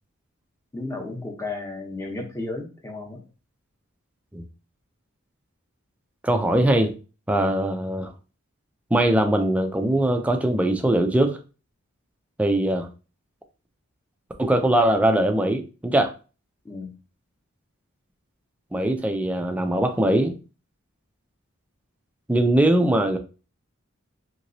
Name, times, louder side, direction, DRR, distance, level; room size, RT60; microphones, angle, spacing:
voice 1, 0.7-3.2 16.6-16.9, left 2 dB, 15° left, 1 dB, 0.7 m, -33 dB
voice 2, 6.2-6.9 7.3-8.1 8.9-11.4 12.4-12.9 14.4-16.1 18.7-20.4 22.3-23.2, right 1 dB, 5° right, 5 dB, 0.3 m, -21 dB
2.9 x 2.9 x 2.7 m, 0.34 s
head